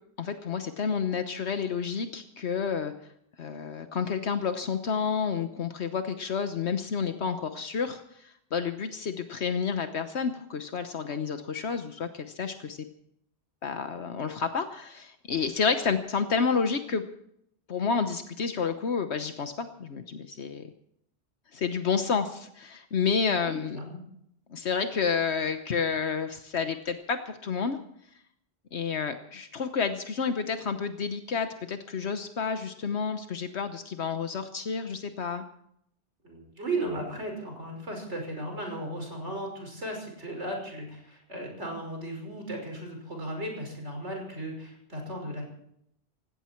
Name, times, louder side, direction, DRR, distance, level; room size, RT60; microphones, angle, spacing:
voice 1, 0.2-2.9 3.4-8.0 8.5-12.8 13.6-17.0 17.7-20.7 21.5-23.8 24.5-27.8 28.7-35.4, left 6 dB, 75° left, 8 dB, 1.3 m, -30 dB
voice 2, 23.4-24.0 36.2-45.5, right 1 dB, 85° right, 2 dB, 6.0 m, -36 dB
18.0 x 17.0 x 4.5 m, 0.71 s
omnidirectional pair, 1.1 m